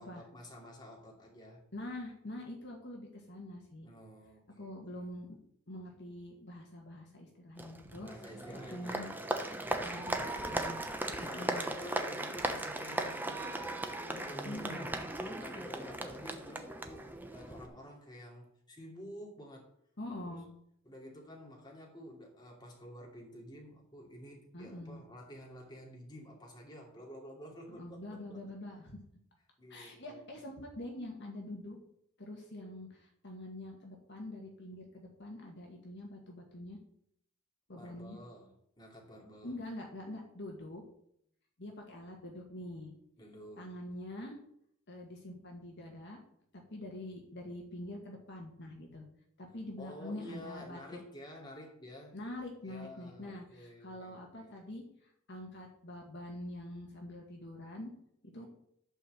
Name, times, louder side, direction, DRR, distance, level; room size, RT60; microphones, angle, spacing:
voice 1, 0.0-1.6 3.8-5.0 7.9-10.7 11.1-19.7 20.2-20.4 20.8-28.4 29.6-30.3 37.7-39.6 43.2-43.7 49.8-52.2 52.6-54.5 58.4-58.5, equal, 20° left, 2.8 m, -50 dB
voice 2, 1.7-3.9 4.6-5.3 5.7-8.1 8.7-9.1 9.8-10.8 11.2-11.6 14.4-15.0 20.0-20.5 24.5-25.0 27.7-29.0 29.7-31.8 32.2-36.8 37.7-38.2 39.4-40.8 41.6-42.9 43.6-44.4 44.9-46.2 46.5-49.0 49.4-51.0 52.1-54.8 55.3-57.9 58.2-58.5, left 1 dB, 55° left, 1.8 m, -45 dB
Applause, 7.6-17.7, right 1 dB, 10° right, 0.9 m, -37 dB
11.5 x 4.6 x 7.3 m
head